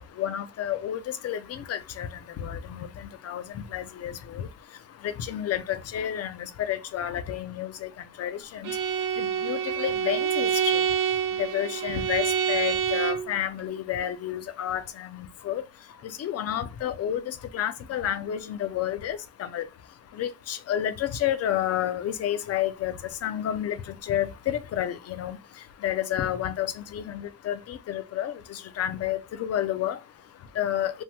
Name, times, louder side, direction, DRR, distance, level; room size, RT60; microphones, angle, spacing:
voice 1, 0.0-31.0, left 11 dB, 55° left, 0.5 m, -31 dB
Bowed string instrument, 8.6-13.3, right 8 dB, 85° right, 0.8 m, -27 dB
3.4 x 2.1 x 2.8 m
cardioid pair, 90°, 30 cm